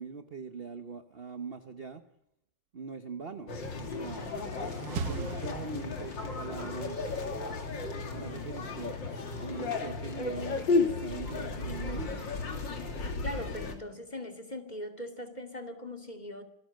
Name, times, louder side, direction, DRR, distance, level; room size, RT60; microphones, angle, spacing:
voice 1, 0.0-2.0 2.7-4.4 4.9-7.0 8.1-9.0 9.4-12.3, right 5 dB, 40° right, 9 dB, 0.9 m, -42 dB
sound 1, 3.5-13.7, left 3 dB, 65° left, 3.3 m, -34 dB
sound 2, 4.2-6.4, right 6 dB, 55° right, 1.5 m, -39 dB
voice 2, 13.2-16.4, left 1 dB, 20° left, 5 dB, 2.3 m, -40 dB
26.5 x 18.5 x 6.5 m, 0.78 s
omnidirectional pair, 2.2 m